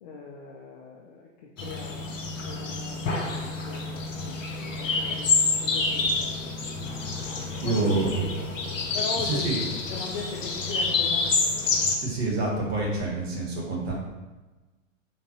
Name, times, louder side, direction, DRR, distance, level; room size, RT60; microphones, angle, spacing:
voice 1, 0.0-2.1 2.5-6.6 7.6-8.3 8.9-11.5, left 4 dB, 35° left, -2 dB, 0.5 m, -39 dB
sound 1, 1.6-12.0, left 4 dB, 75° left, 0.8 m, -28 dB
voice 2, 7.6-8.2 9.1-9.6 11.9-13.9, right 3 dB, 55° right, -3 dB, 1.4 m, -27 dB
3.6 x 2.9 x 2.9 m, 1.2 s
figure-of-eight pair, 110°, 39 cm